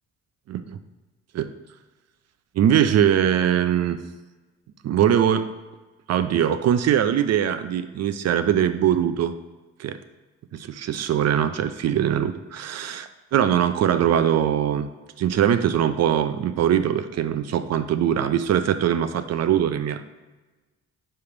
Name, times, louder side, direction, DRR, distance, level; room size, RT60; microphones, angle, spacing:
voice 1, 2.6-4.0 4.8-5.5 6.1-9.3 9.8-10.0 10.5-14.9 15.2-20.2, right 9 dB, 60° right, 11 dB, 0.5 m, -22 dB
6.9 x 3.3 x 5.8 m, 1.2 s
cardioid pair, 90°, 30 cm